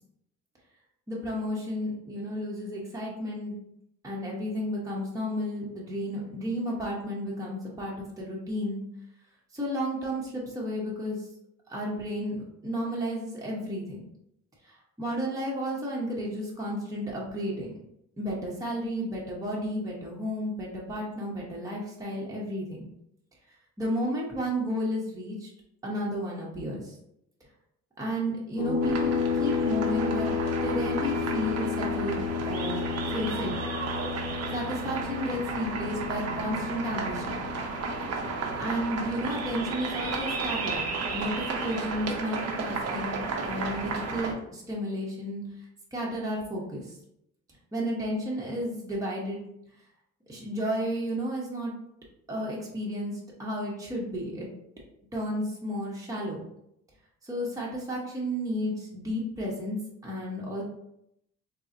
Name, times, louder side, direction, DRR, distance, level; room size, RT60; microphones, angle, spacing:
voice 1, 1.1-3.6 4.0-8.8 9.5-11.3 11.7-14.0 14.6-17.8 18.2-22.9 23.8-25.5 25.8-27.0 28.0-30.3 30.6-33.6 34.5-37.4 38.6-40.8 41.1-45.5 45.9-46.9 47.7-49.4 50.3-51.7 52.3-54.5 55.1-56.4 57.2-59.8 60.0-60.6, equal, 10° right, -4 dB, 0.8 m, -32 dB
sound 1, 28.6-41.7, left 5 dB, 60° left, 0.8 m, -32 dB
sound 2, 28.8-44.3, right 4 dB, 55° right, 0.6 m, -33 dB
3.8 x 2.0 x 2.5 m, 0.77 s
cardioid pair, 90°, 30 cm